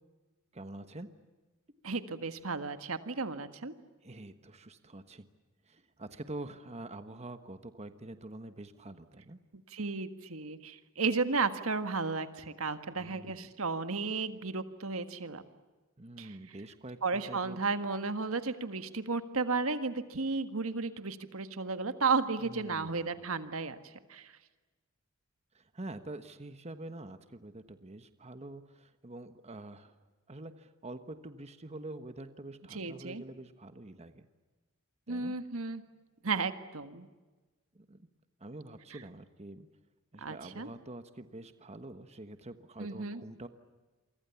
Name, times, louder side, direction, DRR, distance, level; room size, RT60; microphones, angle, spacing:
voice 1, 0.5-1.1 4.0-5.3 5.7-9.4 13.0-13.5 16.0-17.6 22.4-23.1 25.5-29.9 30.3-34.3 35.1-35.3 37.7-38.1 38.4-39.7 40.1-43.5, right 2 dB, 30° right, 10 dB, 1.3 m, -46 dB
voice 2, 1.8-3.7 9.5-15.4 16.2-16.6 17.0-23.8 24.1-24.3 32.7-33.2 35.1-35.8 36.2-37.1 38.9-39.0 40.2-40.7 42.8-43.2, right 4 dB, 75° right, 10 dB, 1.7 m, -34 dB
28.5 x 24.5 x 7.1 m, 1.3 s
head